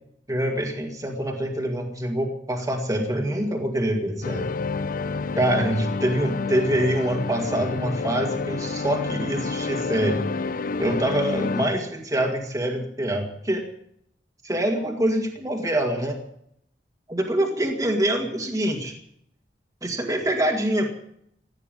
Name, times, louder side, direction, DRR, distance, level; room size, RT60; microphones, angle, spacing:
voice 1, 0.3-4.5 5.3-10.2 10.8-13.6 14.4-16.2 17.1-18.9 19.8-20.9, right 1 dB, 20° right, 2 dB, 2.2 m, -25 dB
sound 1, 4.2-11.7, left 4 dB, 55° left, 0.6 m, -29 dB
16.0 x 9.7 x 9.1 m, 0.71 s
head